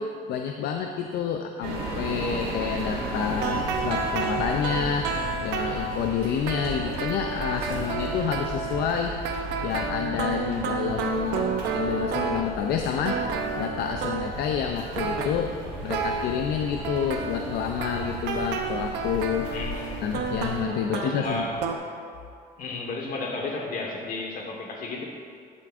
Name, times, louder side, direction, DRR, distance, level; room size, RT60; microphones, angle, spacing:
voice 1, 0.0-5.1 5.4-9.1 9.6-13.2 13.6-19.5 20.0-21.4, left 7 dB, 75° left, 4 dB, 0.5 m, -29 dB
sound 1, 1.6-20.6, right 1 dB, 65° right, 2.2 m, -36 dB
sound 2, 3.3-12.8 13.0-14.5 14.9-16.3 16.8-21.8, right 5 dB, 90° right, 0.7 m, -31 dB
voice 2, 19.5-20.3 20.9-21.6 22.6-25.0, left 3 dB, 55° left, 1 dB, 1.4 m, -33 dB
11.0 x 7.6 x 2.5 m, 2.2 s
cardioid pair, 110°, 17 cm